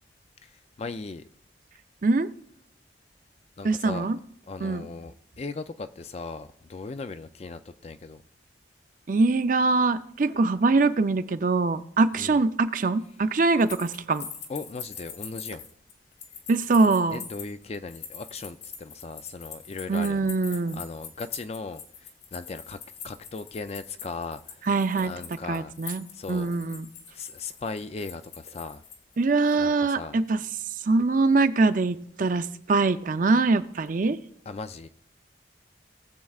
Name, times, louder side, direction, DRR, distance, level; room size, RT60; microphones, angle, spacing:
voice 1, 0.4-1.2 3.6-4.1 4.5-8.2 12.1-12.4 14.5-15.6 17.1-20.3 20.7-22.8 23.0-24.7 25.0-25.7 26.1-26.5 27.1-28.8 29.6-30.2 34.5-34.9, left 3 dB, 35° left, 0.4 m, -38 dB
voice 2, 3.6-4.2 4.6-4.8 9.1-14.3 16.5-17.2 19.9-20.8 24.7-25.1 25.5-26.9 29.2-30.4 30.8-34.2, right 3 dB, 50° right, 0.5 m, -23 dB
sound 1, 13.5-29.2 29.5-29.6, left 7 dB, 65° left, 1.6 m, -43 dB
19.0 x 7.5 x 2.4 m
head